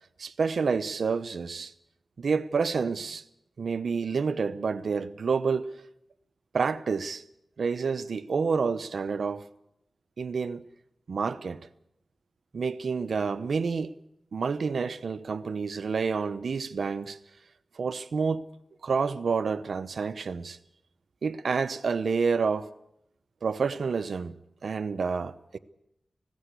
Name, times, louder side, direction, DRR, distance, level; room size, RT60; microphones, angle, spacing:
voice 1, 0.2-1.7 2.2-3.2 3.6-5.7 6.5-7.2 7.6-9.5 10.2-10.6 11.1-11.6 12.5-13.9 14.3-17.2 17.7-18.4 18.8-20.6 21.2-22.7 23.4-25.6, right 5 dB, 85° right, 0.8 m, -29 dB
19.5 x 16.5 x 8.2 m
cardioid pair, 60°, 0 cm